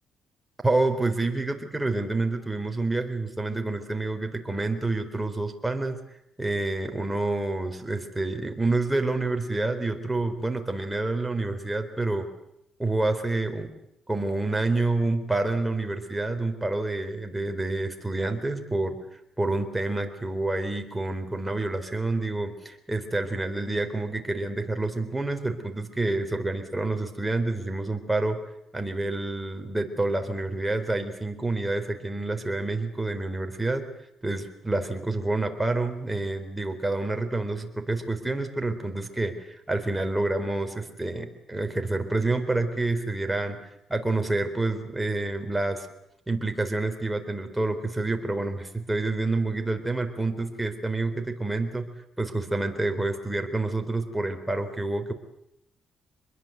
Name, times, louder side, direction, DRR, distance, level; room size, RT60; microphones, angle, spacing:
voice 1, 0.6-6.0 6.4-12.3 12.8-13.7 14.1-19.0 19.4-28.4 28.7-33.8 34.2-43.6 43.9-45.9 46.3-51.9 52.2-55.1, right 2 dB, 10° right, 5 dB, 4.1 m, -28 dB
25.5 x 22.0 x 8.2 m, 0.82 s
cardioid pair, 90°, 0 cm